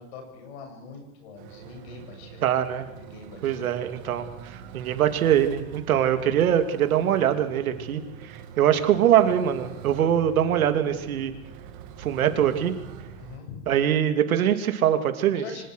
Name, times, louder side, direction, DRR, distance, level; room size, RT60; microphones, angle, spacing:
voice 1, 0.0-2.5 3.0-3.7 13.2-13.6 15.3-15.6, left 5 dB, 50° left, 4 dB, 7.1 m, -43 dB
sound 1, 1.4-13.4, right 8 dB, 35° right, 2.4 m, -44 dB
voice 2, 2.4-2.9 3.4-11.3 12.0-12.7 13.7-15.4, right 10 dB, 90° right, 9 dB, 2.8 m, -23 dB
24.5 x 18.5 x 6.4 m, 0.92 s
supercardioid pair, 175°, 41 cm